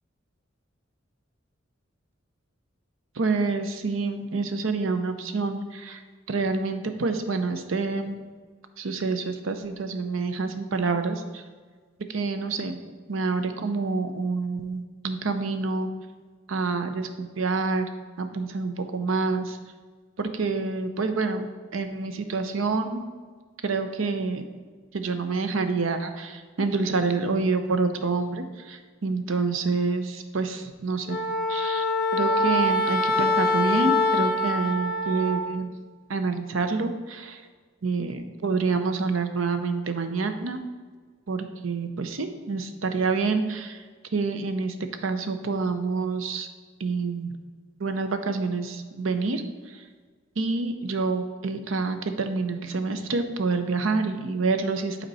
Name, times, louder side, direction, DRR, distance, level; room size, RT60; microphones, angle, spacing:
voice 1, 3.2-6.0 6.3-8.2 8.8-11.4 12.1-12.8 13.1-15.9 16.5-17.9 18.2-19.6 20.2-23.1 23.6-24.5 24.9-31.2 31.5-31.8 32.1-35.7 36.1-37.4 37.8-40.6 41.3-43.8 44.1-44.8 45.0-46.5 46.8-47.3 47.8-49.4 49.7-49.8 50.4-55.0, right 4 dB, 80° right, 8 dB, 0.6 m, -27 dB
Wind instrument woodwind instrument, 31.1-35.5, left 2 dB, 50° left, 0.6 m, -24 dB
8.0 x 4.4 x 4.1 m, 1.5 s
head